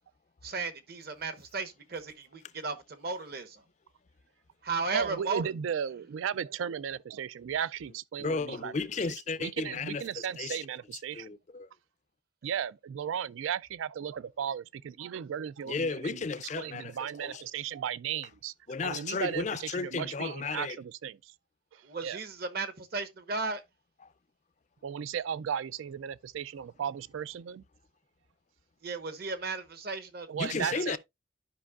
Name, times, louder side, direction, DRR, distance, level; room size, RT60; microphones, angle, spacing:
voice 1, 0.4-3.6 4.6-5.4 21.8-23.6 28.8-31.0, right 4 dB, 50° right, 1.0 m, -35 dB
voice 2, 4.9-8.7 9.4-11.4 12.4-16.2 16.5-18.5 18.8-21.3 21.7-22.2 24.8-27.6 30.3-31.0, right 8 dB, 75° right, 0.3 m, -35 dB
voice 3, 8.2-10.6 11.1-11.7 15.7-16.9 17.2-17.4 18.7-20.8 30.4-31.0, left 4 dB, 35° left, 0.4 m, -34 dB
12.5 x 5.3 x 2.3 m
head